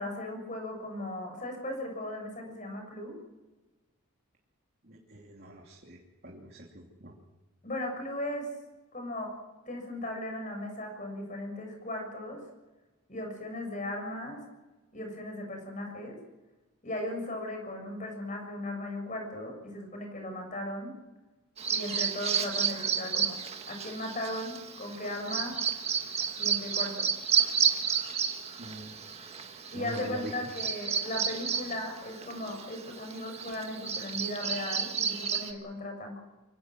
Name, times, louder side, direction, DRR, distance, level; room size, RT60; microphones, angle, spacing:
voice 1, 0.0-3.2 7.6-8.5 8.9-9.4 9.7-12.4 13.1-14.4 14.9-16.2 16.8-20.9 21.7-23.4 23.7-25.6 26.4-27.1 29.7-36.2, left 1 dB, 35° left, 3 dB, 6.7 m, -37 dB
voice 2, 4.8-7.2 28.6-29.1 29.7-30.3, right 1 dB, 45° right, -1 dB, 2.9 m, -44 dB
Bird vocalization bird call bird song, 21.6-35.5, right 7 dB, 30° right, 1.8 m, -32 dB
24.5 x 17.5 x 7.6 m, 1.1 s
head